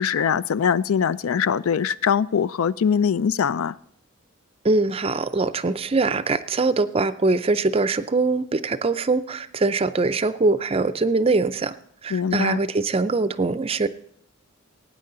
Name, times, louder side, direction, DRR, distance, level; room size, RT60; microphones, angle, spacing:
voice 1, 0.0-3.8 12.1-12.6, left 7 dB, 75° left, 0.4 m, -22 dB
voice 2, 4.6-11.7 12.0-13.9, right 3 dB, 25° right, 0.4 m, -22 dB
18.5 x 9.2 x 3.9 m
head